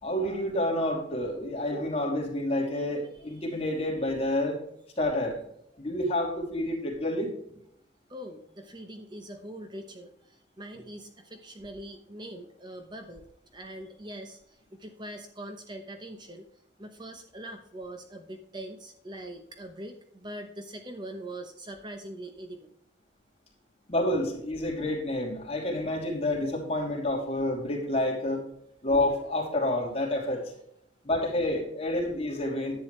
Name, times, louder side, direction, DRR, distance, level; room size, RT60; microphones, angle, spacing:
voice 1, 0.0-4.6 5.0-5.4 5.8-7.3 23.9-28.4 28.8-30.4 31.0-32.8, left 1 dB, 35° left, -2 dB, 2.8 m, -29 dB
voice 2, 8.1-13.2 13.5-16.5 16.8-22.7, right 1 dB, 25° right, 6 dB, 0.9 m, -42 dB
10.5 x 8.5 x 3.2 m, 0.72 s
head